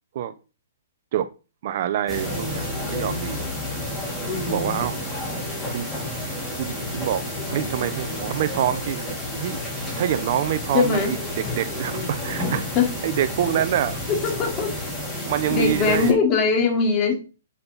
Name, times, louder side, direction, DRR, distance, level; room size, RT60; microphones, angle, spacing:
voice 1, 1.6-3.5 4.5-5.1 5.7-5.9 6.6-9.0 9.4-9.6 10.0-12.7 13.0-14.0 15.2-16.2, right 11 dB, 45° right, 1.0 m, -26 dB
sound 1, 2.1-16.1, left 1 dB, 10° left, 5.1 m, -30 dB
voice 2, 4.2-4.8 10.7-11.1 12.7-12.9 14.1-14.7 15.5-17.2, left 5 dB, 25° left, 4.1 m, -21 dB
11.0 x 8.9 x 4.2 m
hypercardioid pair, 155°, 0 cm